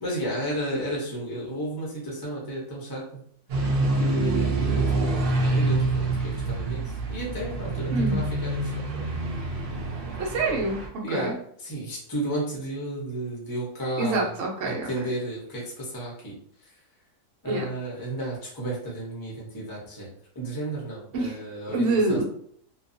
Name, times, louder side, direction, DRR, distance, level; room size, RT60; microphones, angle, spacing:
voice 1, 0.0-3.2 4.0-9.1 11.0-14.3 14.6-16.3 16.6-16.7 17.4-20.1 20.3-22.2, right 1 dB, 25° left, -4 dB, 0.5 m, -33 dB
sound 1, 3.5-10.9, right 2 dB, 85° right, 0.5 m, -26 dB
voice 2, 10.2-11.3 14.0-14.9 17.5-17.7 21.1-21.4 21.7-22.2, right 2 dB, 60° right, -1 dB, 0.9 m, -26 dB
2.6 x 2.3 x 2.5 m, 0.62 s
omnidirectional pair, 1.6 m